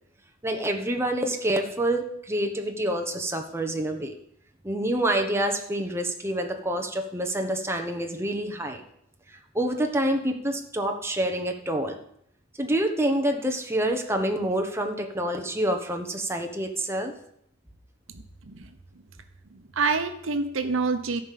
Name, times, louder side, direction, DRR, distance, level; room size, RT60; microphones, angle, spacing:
voice 1, 0.4-4.1 4.6-8.8 9.5-11.9 12.6-17.1, right 1 dB, 15° right, 3 dB, 1.1 m, -27 dB
voice 2, 18.1-18.7 19.5-21.2, right 4 dB, 75° right, 8 dB, 0.9 m, -27 dB
13.5 x 5.3 x 7.6 m, 0.71 s
head